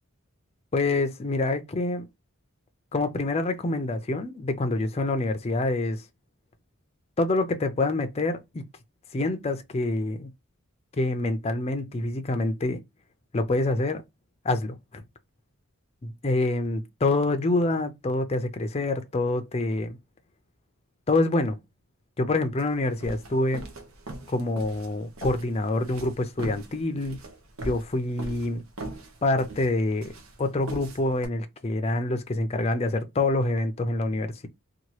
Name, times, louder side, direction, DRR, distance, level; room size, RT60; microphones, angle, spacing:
voice 1, 0.7-2.1 2.9-6.0 7.2-8.6 9.1-10.3 11.0-12.8 13.3-14.0 14.4-15.0 16.0-20.0 21.1-21.6 22.2-23.7 24.3-27.2 27.6-28.6 29.2-34.5, left 2 dB, 30° left, 0.4 m, -26 dB
sound 1, 22.6-31.3, right 2 dB, 75° right, 0.7 m, -41 dB
2.8 x 2.3 x 3.0 m
head